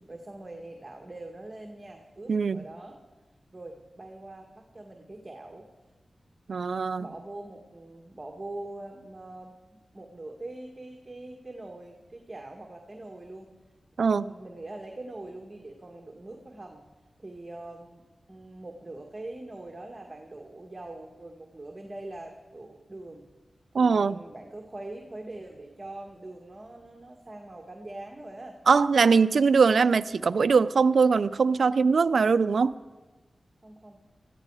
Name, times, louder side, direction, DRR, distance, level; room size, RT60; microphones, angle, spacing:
voice 1, 0.1-3.0 3.5-5.7 7.0-13.5 14.1-16.8 17.2-23.2 23.8-28.6 33.6-34.0, right 2 dB, 30° right, 2 dB, 1.9 m, -43 dB
voice 2, 2.3-2.6 6.5-7.1 14.0-14.3 23.7-24.2 28.7-32.7, right 5 dB, 75° right, 15 dB, 0.5 m, -22 dB
20.5 x 14.5 x 4.9 m, 1.3 s
cardioid pair, 65°, 0 cm